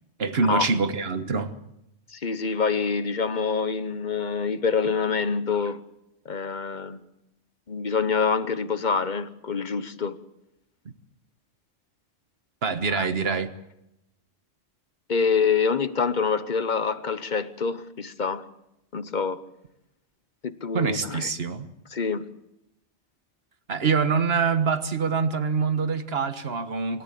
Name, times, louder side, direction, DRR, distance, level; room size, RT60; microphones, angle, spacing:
voice 1, 0.2-1.5 12.6-13.5 20.7-21.7 23.7-27.0, right 5 dB, 55° right, 1.6 m, -25 dB
voice 2, 2.1-5.8 6.2-7.0 7.7-10.2 12.9-13.1 15.1-18.4 18.9-19.4 20.4-21.3 21.9-22.3, left 5 dB, 40° left, 1.1 m, -26 dB
26.5 x 13.5 x 8.6 m
omnidirectional pair, 1.2 m